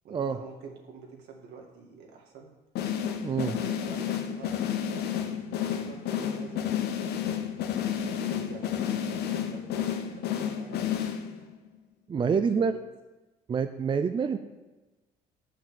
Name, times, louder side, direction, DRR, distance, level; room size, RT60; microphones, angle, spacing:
voice 1, 0.0-2.5 3.4-7.1 7.8-11.3 12.1-12.3 12.5-12.8, right 5 dB, 75° right, 0 dB, 2.0 m, -47 dB
sound 1, 2.8-11.6, left 9 dB, 75° left, 0.9 m, -31 dB
voice 2, 3.2-3.5 12.1-12.8 13.5-14.4, right 6 dB, 30° right, 9 dB, 0.5 m, -26 dB
7.4 x 5.7 x 7.2 m, 1.1 s
cardioid pair, 110°, 17 cm